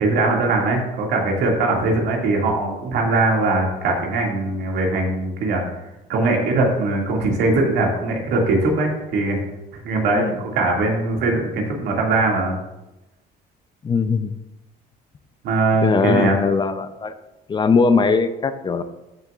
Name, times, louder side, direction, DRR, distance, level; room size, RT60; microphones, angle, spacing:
voice 1, 0.0-5.6 6.1-9.4 9.8-10.2 10.5-12.6 15.4-16.3, right 2 dB, 80° right, 0 dB, 2.2 m, -21 dB
voice 2, 13.8-14.3 15.8-17.1 17.5-18.8, left 4 dB, 25° left, 11 dB, 0.5 m, -20 dB
13.5 x 6.8 x 2.5 m, 0.99 s
cardioid pair, 110°, 17 cm